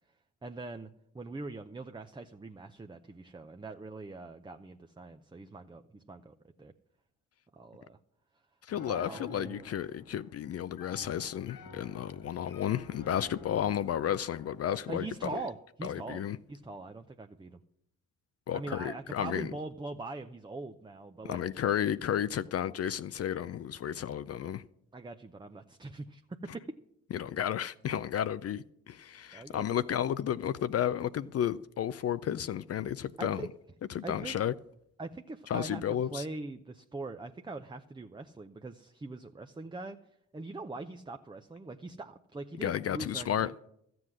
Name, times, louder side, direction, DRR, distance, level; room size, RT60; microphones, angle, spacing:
voice 1, 0.4-6.7 7.5-8.0 8.8-9.7 14.9-16.2 16.5-17.6 18.5-21.4 24.9-26.2 26.5-26.7 29.3-29.6 33.2-33.5 34.0-34.4 35.0-40.0 40.3-43.5, right 3 dB, 15° right, 0.6 m, -42 dB
Piano, 8.7-15.6, left 4 dB, 70° left, 2.2 m, -51 dB
voice 2, 8.7-15.4 15.8-16.4 18.5-19.5 21.2-24.6 27.1-33.5 33.9-34.5 35.5-36.2 42.6-43.7, left 10 dB, 45° left, 0.5 m, -32 dB
13.0 x 7.8 x 6.2 m
supercardioid pair, 55°, 35 cm